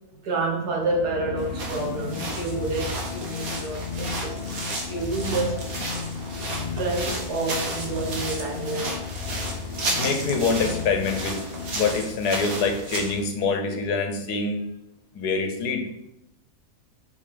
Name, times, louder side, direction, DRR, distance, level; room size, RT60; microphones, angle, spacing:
voice 1, 0.1-5.6 6.7-9.0 12.4-12.5, right 2 dB, 85° right, 2.0 m, -29 dB
sound 1, 0.7-12.4, left 5 dB, 65° left, 0.5 m, -34 dB
sound 2, 1.4-13.2, right 2 dB, 65° right, 1.7 m, -33 dB
voice 2, 10.0-11.4 11.7-14.6 15.1-15.8, left 4 dB, 90° left, 1.5 m, -25 dB
5.5 x 5.0 x 5.1 m
omnidirectional pair, 1.6 m